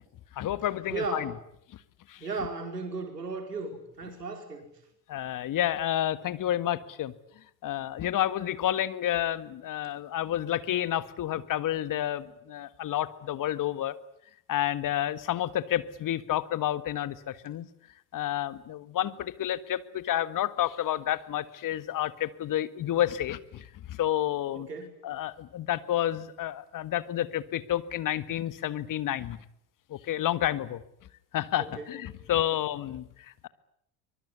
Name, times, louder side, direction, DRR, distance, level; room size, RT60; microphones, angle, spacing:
voice 1, 0.3-1.3 2.1-2.3 5.1-7.1 7.6-13.9 14.5-17.7 18.1-24.7 25.0-29.4 29.9-30.8 31.3-33.5, left 12 dB, 45° left, 15 dB, 1.7 m, -30 dB
voice 2, 0.9-1.3 2.2-4.7 24.5-25.0 31.6-31.9, right 3 dB, 85° right, 5 dB, 5.0 m, -35 dB
24.5 x 22.5 x 9.7 m, 0.73 s
figure-of-eight pair, 60°, 46 cm